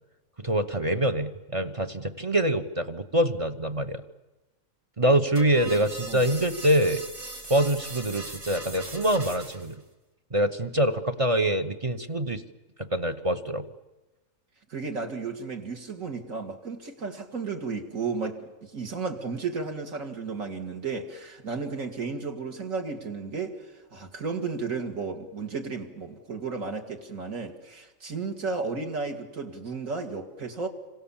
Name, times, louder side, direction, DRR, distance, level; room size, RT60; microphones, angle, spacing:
voice 1, 0.4-4.0 5.0-7.0 7.5-9.8 10.3-12.4 12.8-13.7, right 1 dB, 25° right, 8 dB, 0.8 m, -25 dB
sound 1, 5.4-9.8, right 1 dB, 70° right, 4.6 m, -40 dB
voice 2, 5.6-6.3 14.7-23.6 23.9-30.7, right 4 dB, 55° right, 4 dB, 2.6 m, -33 dB
27.0 x 25.5 x 7.2 m, 1.1 s
omnidirectional pair, 1.7 m